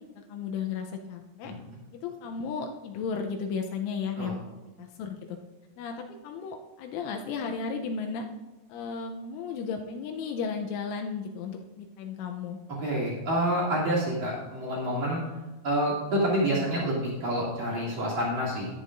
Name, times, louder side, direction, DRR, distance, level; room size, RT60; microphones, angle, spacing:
voice 1, 0.3-1.5 1.9-4.4 4.8-5.4 5.8-8.3 8.7-12.6, left 5 dB, 85° left, 3 dB, 3.0 m, -34 dB
voice 2, 12.8-15.2 15.6-18.7, equal, 45° right, -6 dB, 3.5 m, -28 dB
14.0 x 10.0 x 2.6 m, 1.1 s
omnidirectional pair, 5.8 m